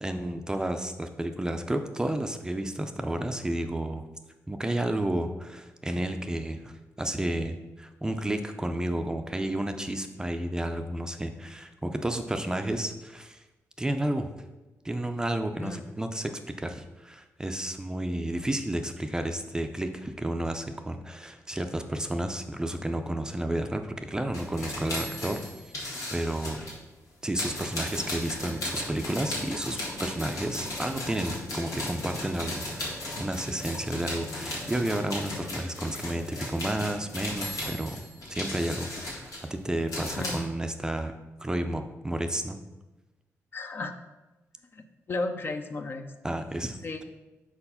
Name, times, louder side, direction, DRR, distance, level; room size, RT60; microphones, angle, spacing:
voice 1, 0.0-4.0 4.5-13.4 13.8-14.3 14.8-16.3 16.6-25.4 25.8-26.6 27.2-38.0 38.3-42.6 46.2-47.0, right 1 dB, 10° right, 7 dB, 0.4 m, -31 dB
sound 1, 24.3-26.8 27.3-40.4, left 1 dB, 85° left, 1.9 m, -36 dB
voice 2, 43.5-43.9 44.7-46.1 46.8-47.0, left 3 dB, 40° left, 7 dB, 0.5 m, -34 dB
4.6 x 4.4 x 5.5 m, 1.1 s
cardioid pair, 100°, 6 cm